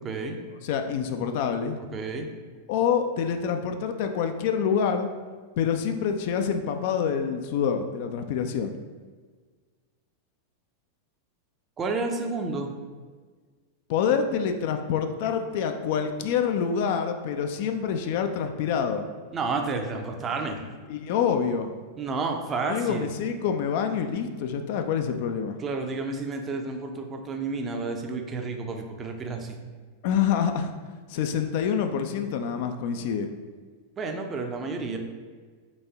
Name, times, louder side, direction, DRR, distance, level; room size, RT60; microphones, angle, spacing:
voice 1, 0.0-0.4 1.9-2.3 11.8-12.7 19.3-20.6 22.0-23.1 25.6-29.6 34.0-35.0, right 3 dB, 25° right, 3 dB, 0.5 m, -30 dB
voice 2, 0.6-1.8 2.7-5.1 5.6-8.7 13.9-19.0 20.9-21.7 22.7-25.6 30.0-30.7 31.1-33.3, left 7 dB, 50° left, 7 dB, 0.3 m, -26 dB
4.1 x 3.4 x 3.3 m, 1.5 s
figure-of-eight pair, 90°, 0 cm